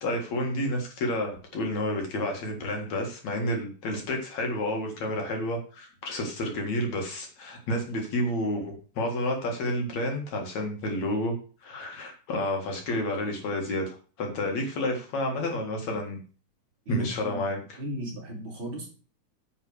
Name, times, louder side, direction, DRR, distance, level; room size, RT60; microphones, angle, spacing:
voice 1, 0.0-11.3 11.6-16.2 16.9-17.8, left 1 dB, 60° left, 2 dB, 3.0 m, -30 dB
voice 2, 16.9-17.5 17.8-18.9, right 1 dB, 40° right, -2 dB, 3.7 m, -35 dB
9.7 x 5.6 x 6.3 m, 0.37 s
omnidirectional pair, 3.7 m